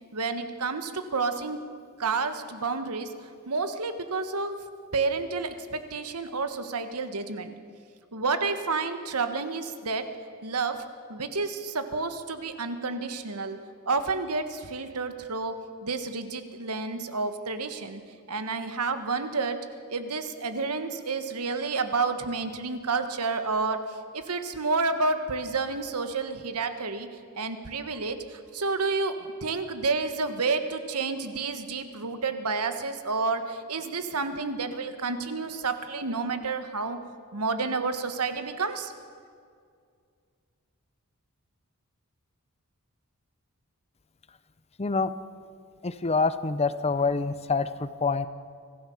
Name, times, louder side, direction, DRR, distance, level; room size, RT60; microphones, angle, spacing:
voice 1, 0.1-1.6 2.0-3.1 3.5-4.6 4.9-7.5 8.1-10.1 10.4-10.8 11.1-13.6 13.9-15.6 15.8-18.0 18.3-27.1 27.3-29.2 29.4-37.0 37.3-38.9, right 4 dB, 85° right, 9 dB, 1.5 m, -30 dB
voice 2, 44.8-45.1 45.8-48.3, left 4 dB, 30° left, 13 dB, 0.7 m, -26 dB
25.0 x 15.5 x 7.2 m, 2.2 s
head